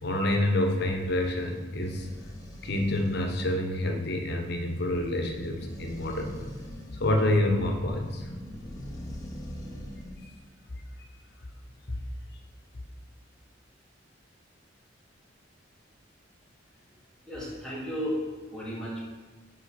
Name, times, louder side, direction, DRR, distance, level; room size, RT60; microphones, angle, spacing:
voice 1, 0.0-2.1 2.6-6.5 7.0-8.2, left 1 dB, 55° left, 3 dB, 1.0 m, -27 dB
sound 1, 0.9-10.3, equal, 20° left, 1.0 m, -44 dB
voice 2, 17.3-19.0, equal, 5° left, -7 dB, 2.1 m, -34 dB
5.7 x 5.0 x 5.9 m, 1.3 s
head